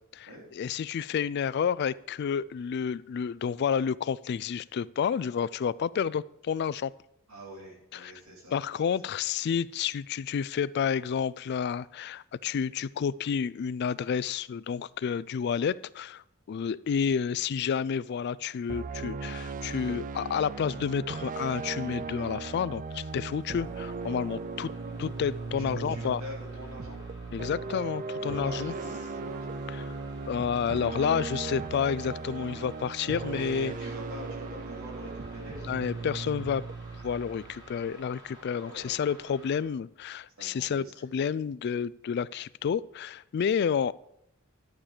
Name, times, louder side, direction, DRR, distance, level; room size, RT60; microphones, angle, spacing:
voice 1, 0.5-6.9 7.9-8.1 8.5-24.7 25.0-26.2 27.3-28.7 29.7-29.8 30.3-33.7 35.7-36.6 37.0-43.9, left 7 dB, 50° left, 18 dB, 0.3 m, -30 dB
voice 2, 7.3-8.6 9.0-9.1 25.6-27.0 28.2-29.6 33.0-35.8 38.7-39.0 40.4-40.9, equal, 85° right, -3 dB, 3.3 m, -45 dB
sound 1, 18.7-37.9, right 4 dB, 40° right, 0.4 m, -37 dB
sound 2, 22.7-39.8, right 1 dB, 20° right, 2.2 m, -53 dB
11.5 x 7.3 x 4.9 m, 0.78 s
head